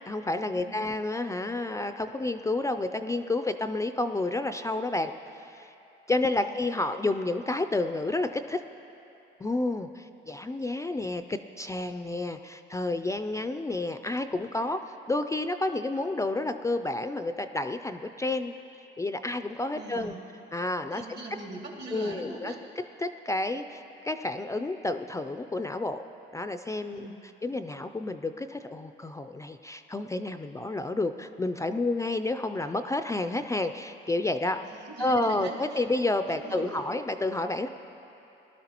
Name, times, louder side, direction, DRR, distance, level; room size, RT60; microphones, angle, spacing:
voice 1, 0.1-5.7 6.1-8.6 9.4-14.8 15.1-18.5 19.0-20.1 20.5-21.1 21.9-22.5 23.0-26.0 26.3-27.0 27.4-34.6 35.0-37.7, left 2 dB, 15° left, 9 dB, 0.3 m, -30 dB
voice 2, 19.7-20.3 20.9-22.6 26.9-27.2 34.6-35.8 36.3-36.8, right 2 dB, 65° right, -1 dB, 2.3 m, -41 dB
18.5 x 12.0 x 2.9 m, 2.9 s
cardioid pair, 90°, 20 cm